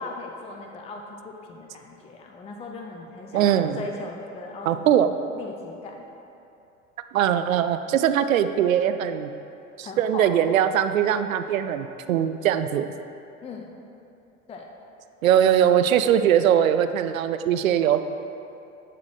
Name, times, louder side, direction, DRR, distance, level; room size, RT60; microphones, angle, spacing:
voice 1, 0.0-5.1 5.3-6.0 9.8-10.3 13.4-13.7 14.5-14.7, left 3 dB, 15° left, 1 dB, 0.6 m, -39 dB
voice 2, 3.3-3.8 4.7-5.1 7.1-9.3 9.8-12.9 15.2-18.0, right 9 dB, 75° right, 10 dB, 0.5 m, -21 dB
12.0 x 5.9 x 3.3 m, 2.8 s
figure-of-eight pair, 85°, 41 cm